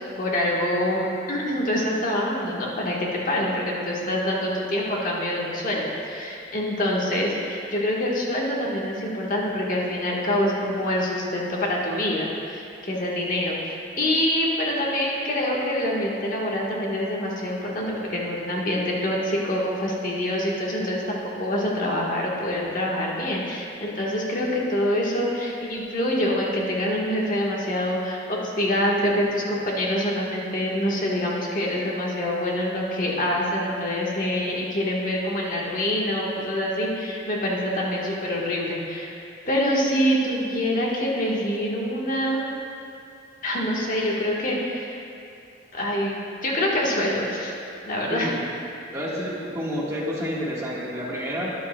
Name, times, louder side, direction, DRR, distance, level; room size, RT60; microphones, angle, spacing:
voice 1, 0.2-39.2 39.5-42.4 43.4-45.0 45.7-47.6 47.8-48.3, left 1 dB, 45° left, -3 dB, 1.3 m, -25 dB
voice 2, 48.1-48.4 48.9-51.5, equal, 15° right, -6 dB, 1.4 m, -29 dB
12.5 x 10.0 x 2.2 m, 2.6 s
head